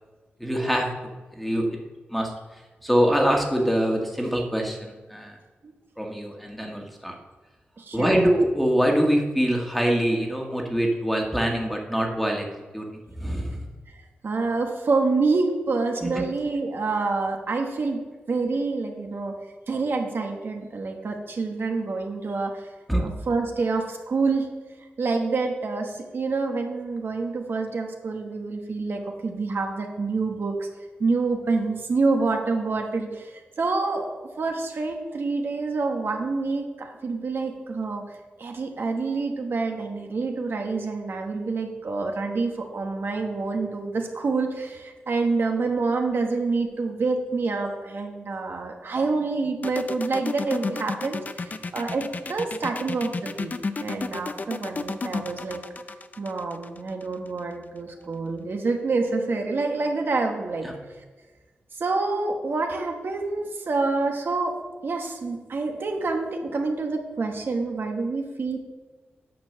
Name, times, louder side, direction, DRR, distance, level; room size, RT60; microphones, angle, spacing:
voice 1, 0.4-0.9 1.3-1.8 2.1-2.3 2.8-5.3 6.0-7.1 7.9-12.4 12.7-12.8 13.2-13.7 16.0-16.1 22.9-23.0 60.6-60.7, equal, ahead, 1 dB, 1.6 m, -24 dB
voice 2, 7.8-8.2 14.2-18.0 18.3-19.3 19.7-22.7 23.0-24.5 25.0-30.7 31.0-38.0 38.4-53.5 53.8-55.6 56.2-60.7 61.8-64.5 64.8-68.6, right 3 dB, 65° right, 3 dB, 1.2 m, -27 dB
sound 1, 49.6-57.4, left 4 dB, 45° left, 0.5 m, -32 dB
9.2 x 4.7 x 6.6 m, 1.3 s
cardioid pair, 75°, 4 cm